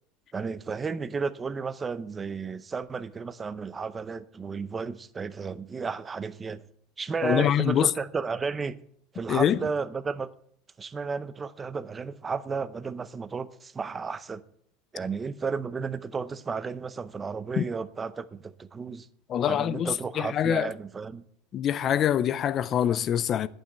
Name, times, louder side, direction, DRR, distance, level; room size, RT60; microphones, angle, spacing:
voice 1, 0.3-6.6 7.0-8.8 9.1-10.3 10.8-14.4 14.9-19.1 19.4-21.2, right 5 dB, 15° right, 0.6 m, -33 dB
voice 2, 7.2-7.9 9.3-9.6 17.6-17.7 19.3-20.7 21.5-23.5, left 10 dB, 30° left, 0.5 m, -25 dB
11.0 x 8.9 x 7.9 m
supercardioid pair, 165°, 0 cm